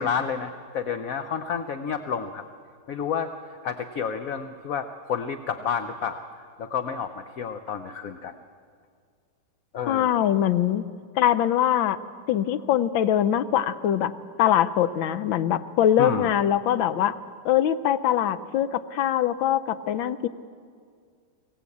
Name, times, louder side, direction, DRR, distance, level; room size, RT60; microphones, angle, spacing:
voice 1, 0.0-2.4 2.9-3.3 3.6-6.2 6.6-8.3 9.7-10.3 16.0-16.3, left 7 dB, 60° left, 9 dB, 1.0 m, -30 dB
voice 2, 9.9-10.8 11.2-12.0 12.3-14.1 14.4-17.2 17.4-20.3, left 10 dB, 85° left, 13 dB, 1.6 m, -22 dB
24.0 x 17.0 x 8.5 m, 2.1 s
omnidirectional pair, 2.1 m